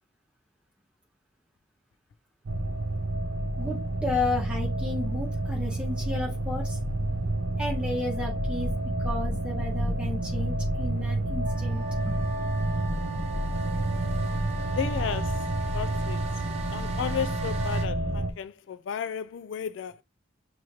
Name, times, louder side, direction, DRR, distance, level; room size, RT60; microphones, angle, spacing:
sound 1, 2.4-18.3, right 1 dB, 80° right, 0.6 m, -29 dB
voice 1, 3.6-6.8 7.6-8.7 9.0-12.1 13.1-13.3, left 2 dB, 5° right, 1.6 m, -33 dB
sound 2, 11.4-17.9, right 6 dB, 35° right, 0.8 m, -40 dB
voice 2, 14.7-15.4 15.7-16.2 16.7-20.0, left 7 dB, 75° left, 0.3 m, -33 dB
6.2 x 2.9 x 2.9 m
head